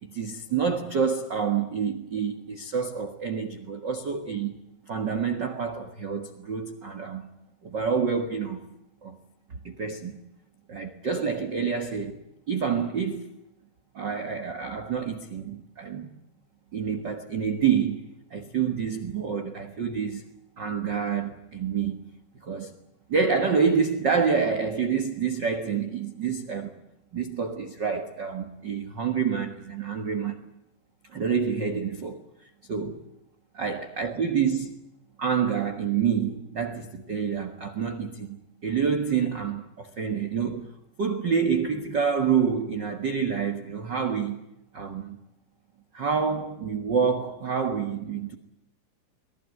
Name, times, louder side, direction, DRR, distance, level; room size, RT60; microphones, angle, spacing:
voice 1, 0.0-4.6 4.9-7.3 7.6-8.6 9.0-9.2 9.6-10.2 10.7-12.2 12.5-13.3 13.9-16.1 16.7-18.0 18.3-20.2 20.6-22.0 22.4-22.7 23.1-26.7 27.1-30.4 31.1-32.2 32.7-33.0 33.5-34.8 35.2-40.7 41.0-44.4 44.7-45.2 45.9-48.3, right 6 dB, 65° right, 1.0 m, -27 dB
24.5 x 19.5 x 9.2 m
omnidirectional pair, 4.6 m